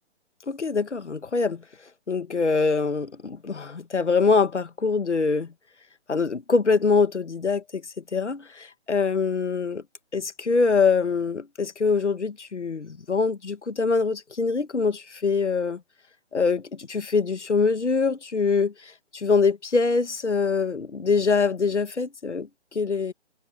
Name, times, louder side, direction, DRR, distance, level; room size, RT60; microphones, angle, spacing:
voice 1, 0.5-1.6 2.1-5.5 6.1-9.8 10.1-15.8 16.3-23.1, left 4 dB, 90° left, 1.8 m, -24 dB
hypercardioid pair, 155°, 34 cm